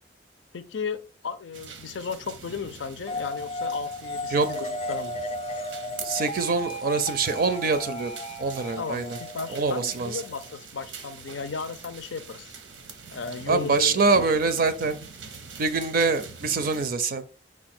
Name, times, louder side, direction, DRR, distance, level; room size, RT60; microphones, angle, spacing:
voice 1, 0.5-5.2 8.8-12.5 13.1-14.3, left 5 dB, 90° left, 0.5 m, -35 dB
sound 1, 1.5-16.9, right 5 dB, 90° right, 0.7 m, -44 dB
sound 2, 3.1-10.6, left 1 dB, 35° left, 0.4 m, -34 dB
voice 2, 6.0-8.1 8.4-9.2 9.5-10.2 13.5-15.0 15.6-17.2, right 4 dB, 50° right, 0.4 m, -24 dB
4.7 x 2.3 x 4.2 m
head